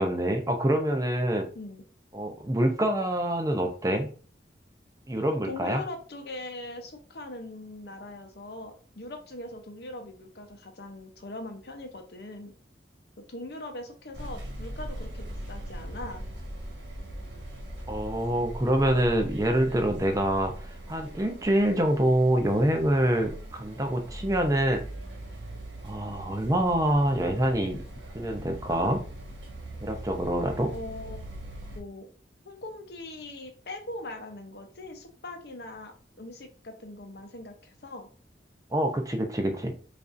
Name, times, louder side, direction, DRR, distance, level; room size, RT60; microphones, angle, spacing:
voice 1, 0.0-1.5 2.1-4.1 5.1-5.8 17.9-24.8 25.8-27.8 28.1-29.0 29.8-30.7 38.7-39.7, right 1 dB, 20° right, 4 dB, 0.4 m, -26 dB
voice 2, 5.4-12.5 13.3-16.2 30.7-31.2 31.7-32.1 32.4-38.1, left 2 dB, 60° left, 5 dB, 0.7 m, -41 dB
sound 1, 14.1-31.8, right 1 dB, 80° right, 1.1 m, -41 dB
5.0 x 2.6 x 2.5 m, 0.39 s
head